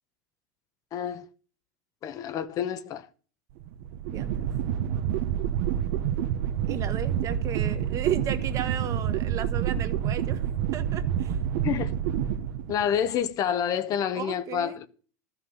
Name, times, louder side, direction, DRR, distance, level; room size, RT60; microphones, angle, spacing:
voice 1, 0.9-1.3 2.0-3.1 11.6-11.9 12.7-14.9, left 9 dB, 40° left, 1.1 m, -28 dB
sound 1, 3.6-13.1, right 9 dB, 65° right, 1.0 m, -28 dB
voice 2, 4.1-4.5 6.7-10.4 10.7-11.3 14.1-14.8, right 9 dB, 40° right, 1.5 m, -34 dB
13.0 x 6.0 x 7.1 m
supercardioid pair, 120°, 9 cm